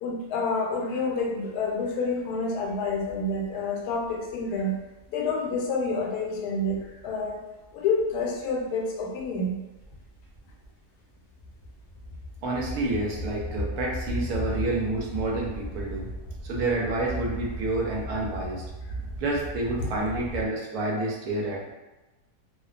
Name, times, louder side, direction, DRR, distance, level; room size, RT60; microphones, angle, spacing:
voice 1, 0.0-4.7 5.1-7.4 7.7-9.6 19.8-20.0, left 3 dB, 80° left, -1 dB, 1.1 m, -28 dB
sound 1, 1.6-1.7 2.3-3.7 4.0-5.3 6.7-7.4 7.6-10.7 11.1-20.5, equal, 55° left, 0.7 m, -37 dB
voice 2, 12.4-16.1 16.4-18.6 19.2-21.7, right 2 dB, 80° right, -2 dB, 1.1 m, -29 dB
2.8 x 2.1 x 2.3 m, 1.1 s
omnidirectional pair, 1.6 m